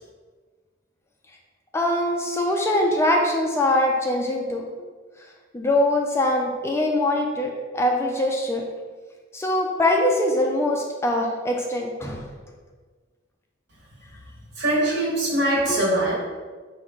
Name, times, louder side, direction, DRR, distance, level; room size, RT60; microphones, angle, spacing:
voice 1, 1.7-4.6 5.5-8.6 9.3-12.3 15.7-15.8, left 1 dB, 15° left, 1 dB, 0.3 m, -23 dB
voice 2, 14.6-16.1, right 1 dB, 60° right, -4 dB, 1.3 m, -22 dB
4.9 x 2.7 x 3.5 m, 1.5 s
head